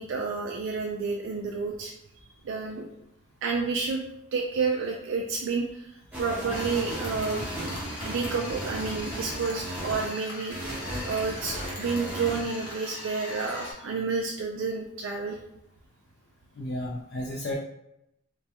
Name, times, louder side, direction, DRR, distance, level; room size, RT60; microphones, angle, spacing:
voice 1, 0.0-1.9 2.4-2.9 3.4-4.0 4.3-7.7 8.0-10.5 11.1-15.4, right 4 dB, 60° right, 0 dB, 0.3 m, -30 dB
sound 1, 6.1-10.1 10.5-13.0, right 1 dB, 5° right, 0.5 m, -36 dB
sound 2, 6.5-13.7, left 2 dB, 75° left, 0.9 m, -41 dB
voice 2, 16.6-17.5, left 1 dB, 50° left, -1 dB, 0.4 m, -33 dB
2.3 x 2.2 x 2.8 m, 0.81 s
head